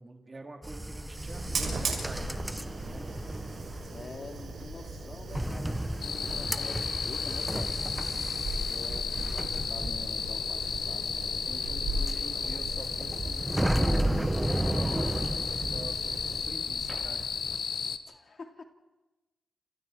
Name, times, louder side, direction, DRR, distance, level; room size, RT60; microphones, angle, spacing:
voice 1, 0.0-3.2 11.5-17.3, right 2 dB, 35° right, 2 dB, 4.0 m, -46 dB
sound 1, 0.6-16.6 16.8-17.6, right 1 dB, 10° right, 1.4 m, -34 dB
Fire, 1.2-17.3, right 2 dB, 75° right, 7.6 m, -38 dB
voice 2, 3.9-7.8 8.4-11.2 18.1-18.6, left 4 dB, 55° left, 4 dB, 2.9 m, -46 dB
sound 2, 6.0-18.0, left 6 dB, 75° left, 1.3 m, -34 dB
29.5 x 28.0 x 4.7 m, 1.1 s
supercardioid pair, 45°, 0 cm